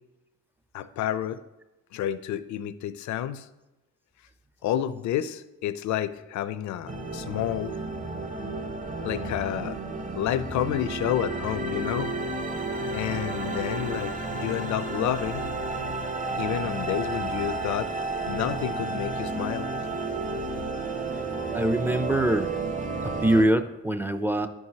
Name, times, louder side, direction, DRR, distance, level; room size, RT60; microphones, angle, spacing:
voice 1, 0.7-1.4 1.9-3.5 4.6-7.7 9.0-9.8 10.1-12.1 12.9-15.5 16.4-17.9 18.3-19.7 19.9-20.1, left 11 dB, 70° left, 13 dB, 0.5 m, -30 dB
sound 1, 6.9-23.5, right 3 dB, 25° right, 0.8 m, -32 dB
voice 2, 21.5-22.5 23.0-24.5, right 1 dB, 5° right, 9 dB, 0.4 m, -24 dB
10.5 x 4.7 x 2.8 m, 1.0 s
cardioid pair, 90°, 30 cm